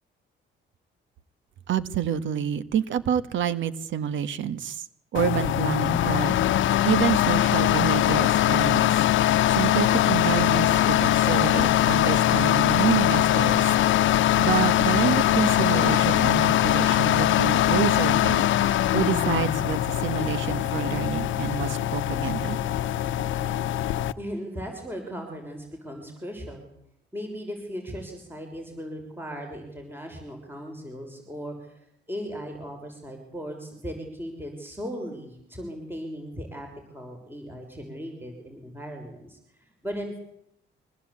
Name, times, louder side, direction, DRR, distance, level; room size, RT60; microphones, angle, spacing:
voice 1, 1.7-4.9 5.1-6.4 6.8-8.9 9.5-13.7 14.4-18.5 18.9-22.6, right 9 dB, 75° right, 15 dB, 1.5 m, -28 dB
sound 1, 5.1-24.1, left 12 dB, 75° left, 0.9 m, -22 dB
voice 2, 24.2-26.7 27.1-36.7 36.9-40.2, equal, 10° right, 3 dB, 6.1 m, -37 dB
24.5 x 18.0 x 8.6 m, 0.76 s
cardioid pair, 90°, 20 cm